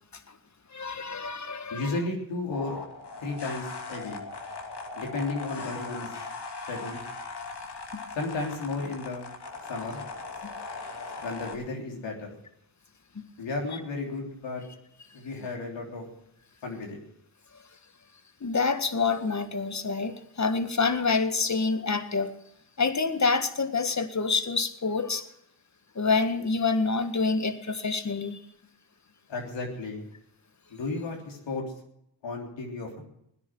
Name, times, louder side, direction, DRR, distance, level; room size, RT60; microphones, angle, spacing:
voice 1, 0.7-2.0 10.4-10.5 18.4-22.3 22.8-25.2 26.0-28.4, left 4 dB, 40° left, 9 dB, 1.7 m, -27 dB
voice 2, 1.7-2.8 3.2-4.2 5.0-6.2 6.6-7.0 8.2-9.3 9.7-10.0 11.2-12.3 13.4-14.6 15.1-16.0 16.6-17.0 29.3-30.1 30.7-31.6 32.2-33.0, left 3 dB, 80° left, 0 dB, 3.6 m, -33 dB
sound 1, 2.5-11.5, left 3 dB, 65° left, 2.6 m, -39 dB
17.5 x 10.0 x 6.1 m, 0.75 s
cardioid pair, 45°, 44 cm